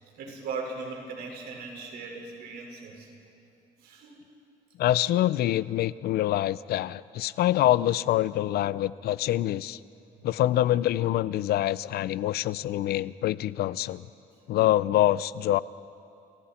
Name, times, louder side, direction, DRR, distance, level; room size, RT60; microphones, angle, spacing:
voice 1, 0.1-3.1 3.8-4.2 10.1-10.3, right 4 dB, 85° right, 0 dB, 5.2 m, -38 dB
voice 2, 4.8-9.8 10.2-14.1 14.5-15.6, left 13 dB, 80° left, 18 dB, 0.6 m, -25 dB
29.5 x 29.0 x 4.4 m, 2.6 s
cardioid pair, 100°, 16 cm